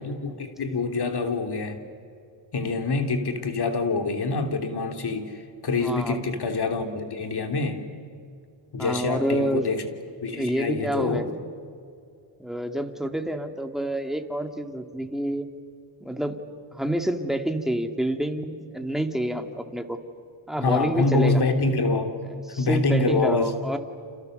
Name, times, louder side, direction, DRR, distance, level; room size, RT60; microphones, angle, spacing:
voice 1, 0.0-1.8 2.5-7.8 8.7-9.8 10.2-11.2 20.6-22.1 22.6-23.5, left 3 dB, 55° left, 6 dB, 3.3 m, -26 dB
voice 2, 5.8-6.2 8.8-9.7 10.3-11.3 12.4-15.5 16.0-16.4 16.7-20.0 20.5-21.4 22.3-23.8, right 1 dB, ahead, 5 dB, 2.5 m, -28 dB
30.0 x 27.5 x 6.7 m, 2.4 s
cardioid pair, 75°, 46 cm